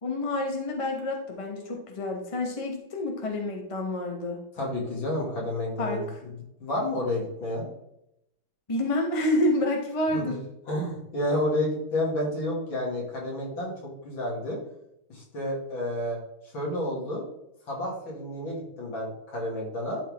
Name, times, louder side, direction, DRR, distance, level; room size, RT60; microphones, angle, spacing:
voice 1, 0.0-4.4 5.8-6.0 8.7-10.4, left 1 dB, 20° left, 1 dB, 1.2 m, -28 dB
voice 2, 4.6-6.3 6.6-7.7 10.1-10.4 10.7-14.6 15.1-16.2 16.5-17.2 17.7-20.0, left 1 dB, 70° left, -3 dB, 3.2 m, -30 dB
12.0 x 4.3 x 3.6 m, 0.82 s
omnidirectional pair, 2.2 m